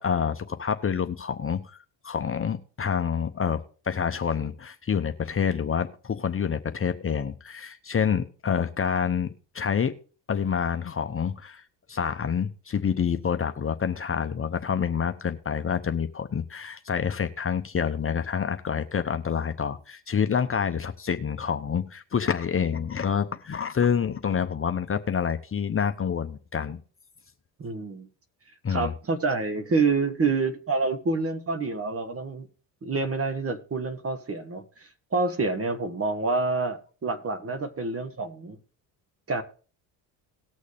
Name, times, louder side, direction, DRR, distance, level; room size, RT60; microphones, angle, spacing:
voice 1, 0.0-1.8 2.0-9.3 9.5-9.9 10.3-11.6 11.9-26.8 28.6-28.9, left 7 dB, 30° left, 0.8 m, -27 dB
voice 2, 27.6-28.1 28.7-32.5 32.8-38.6 39.3-39.4, right 3 dB, 30° right, 1.3 m, -27 dB
18.5 x 6.3 x 3.5 m
cardioid pair, 90°, 45 cm